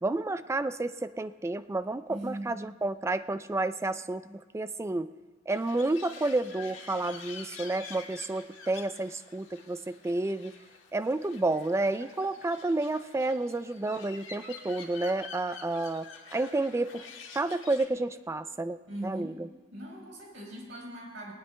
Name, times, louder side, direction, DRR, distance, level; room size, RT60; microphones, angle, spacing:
voice 1, 0.0-5.1 5.5-10.5 10.9-17.0 17.3-18.8 19.0-19.5, right 2 dB, 15° right, 13 dB, 0.3 m, -30 dB
voice 2, 2.1-2.6 18.9-19.4 19.7-21.3, right 1 dB, 70° right, -3 dB, 4.9 m, -40 dB
sound 1, 5.5-17.9, left 5 dB, 75° left, 1.6 m, -48 dB
20.0 x 19.5 x 2.2 m, 1.4 s
head